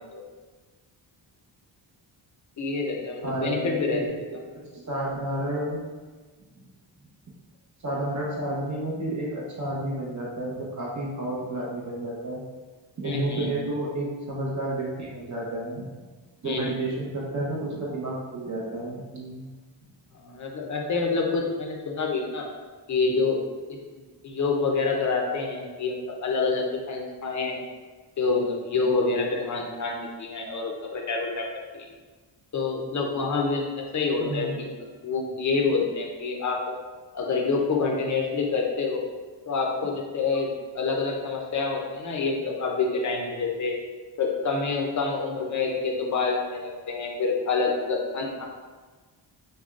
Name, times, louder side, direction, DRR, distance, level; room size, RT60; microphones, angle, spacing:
voice 1, 2.6-4.2 13.0-13.5 16.4-16.7 20.1-22.5 22.9-23.4 23.7-23.8 24.2-27.6 28.2-31.5 31.7-31.9 32.5-34.7 35.0-36.7 37.1-39.0 39.5-43.8 44.2-48.5, left 4 dB, 40° left, 0 dB, 0.6 m, -27 dB
voice 2, 3.2-4.4 4.9-5.8 7.8-12.4 13.0-15.8 16.4-19.4 34.2-34.6, right 1 dB, 40° right, -5 dB, 0.9 m, -31 dB
5.0 x 2.2 x 2.4 m, 1.4 s
wide cardioid pair, 140°, 46 cm